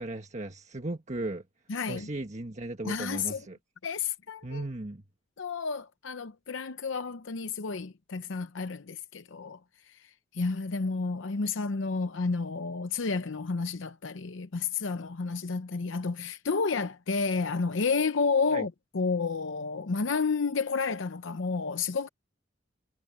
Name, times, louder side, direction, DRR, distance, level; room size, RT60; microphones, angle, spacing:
voice 1, 0.0-1.4 1.9-3.6 4.4-5.0 18.5-18.7, right 2 dB, 35° right, 1.5 m, -36 dB
voice 2, 1.7-2.1 2.8-3.4 3.8-4.6 5.4-9.6 10.3-22.1, left 4 dB, 75° left, 0.7 m, -31 dB
head